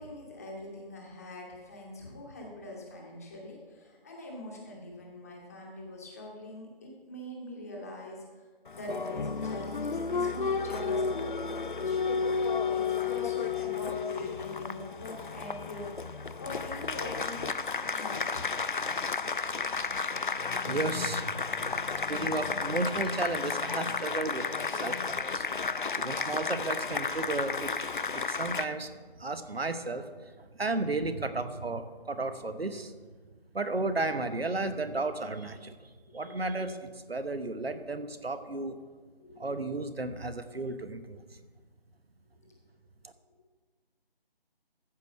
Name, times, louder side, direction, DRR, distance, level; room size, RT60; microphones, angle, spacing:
voice 1, 0.0-17.5 17.9-18.5 31.0-31.1 36.1-36.6 37.6-37.7 39.2-39.4 42.4-42.5, left 1 dB, 15° left, -2 dB, 1.1 m, -43 dB
Applause, 8.7-28.6, left 5 dB, 55° left, 0.5 m, -32 dB
voice 2, 20.6-25.5 25.9-27.9 28.1-28.9 29.2-30.1 30.4-32.9 33.5-36.7 37.1-38.8 39.4-41.2 43.0-43.1, right 2 dB, 80° right, 10 dB, 1.1 m, -34 dB
14.5 x 4.8 x 6.5 m, 1.4 s
figure-of-eight pair, 160°, 30 cm